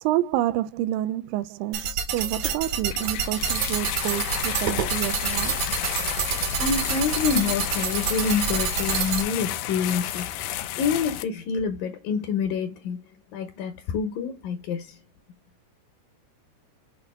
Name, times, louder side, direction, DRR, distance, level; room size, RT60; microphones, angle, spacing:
voice 1, 0.0-5.6, right 14 dB, 80° right, 2.1 m, -28 dB
sound 1, 1.7-9.2, right 7 dB, 65° right, 2.1 m, -28 dB
sound 2, 2.9-11.2, left 12 dB, 90° left, 1.8 m, -31 dB
voice 2, 6.6-13.0 13.3-15.0, left 6 dB, 70° left, 2.5 m, -27 dB
7.0 x 2.8 x 5.5 m
omnidirectional pair, 4.4 m